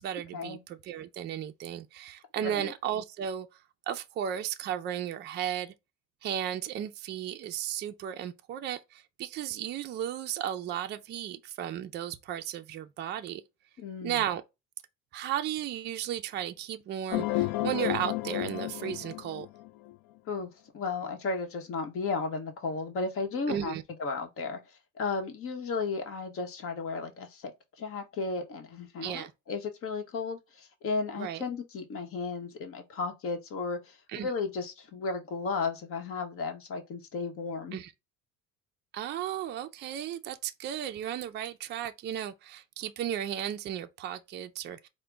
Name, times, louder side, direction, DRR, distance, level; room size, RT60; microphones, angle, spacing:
voice 1, 0.0-3.5 3.9-5.7 6.2-13.4 14.0-14.4 15.1-19.5 23.5-23.8 29.0-29.3 31.2-31.4 34.1-34.3 37.7-37.9 38.9-44.9, right 10 dB, 35° right, 0.4 m, -34 dB
voice 2, 2.4-2.7 13.8-14.2 20.3-23.7 24.0-27.5 27.8-37.8, left 4 dB, 40° left, 1.0 m, -34 dB
sound 1, 17.1-19.9, left 17 dB, 70° left, 0.5 m, -31 dB
5.0 x 2.2 x 3.3 m
cardioid pair, 150°, 33 cm